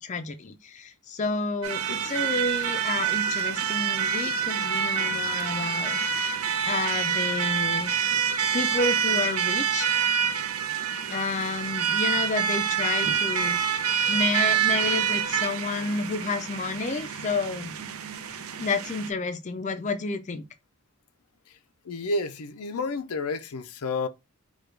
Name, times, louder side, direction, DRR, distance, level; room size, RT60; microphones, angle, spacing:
voice 1, 0.0-8.0 8.5-9.9 11.1-13.7 14.1-17.7 18.6-20.4, left 3 dB, 35° left, 0.4 m, -30 dB
sound 1, 1.6-19.1, right 7 dB, 75° right, 0.6 m, -27 dB
voice 2, 21.8-24.1, left 3 dB, 80° left, 0.5 m, -30 dB
4.9 x 2.3 x 4.4 m
head